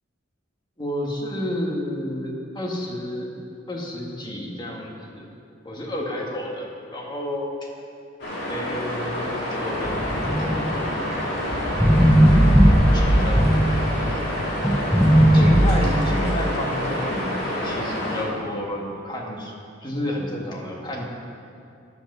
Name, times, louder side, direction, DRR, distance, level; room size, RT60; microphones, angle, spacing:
voice 1, 0.8-3.3 3.7-5.3 5.6-7.7 8.5-10.1 12.9-13.6 14.1-14.2 15.3-19.5 19.8-21.0, left 1 dB, 25° left, -2 dB, 1.8 m, -30 dB
sound 1, 8.2-18.2, left 1 dB, 60° left, 2.9 m, -28 dB
sound 2, 9.8-14.2 14.6-15.6, equal, ahead, 0.7 m, -18 dB
10.5 x 8.1 x 6.8 m, 2.5 s
head